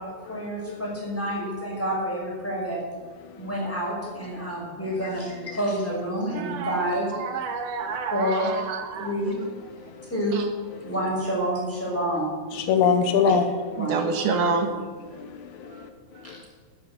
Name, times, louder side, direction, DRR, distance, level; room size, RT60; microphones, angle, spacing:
voice 1, 0.0-2.8 3.4-7.1 8.1-8.5 9.0-9.3 10.1-10.4 10.8-12.3 13.2-14.0 14.4-14.6 16.2-16.3, right 1 dB, 5° left, -4 dB, 5.1 m, -28 dB
voice 2, 6.3-6.8 7.1-9.1 10.3-10.5 13.8-14.7 15.7-15.8 16.2-16.3, right 4 dB, 65° right, 6 dB, 2.4 m, -28 dB
voice 3, 12.5-13.4 15.2-15.9 16.3-16.4, left 6 dB, 85° left, 7 dB, 1.7 m, -23 dB
12.5 x 10.5 x 7.2 m, 1.5 s
omnidirectional pair, 4.7 m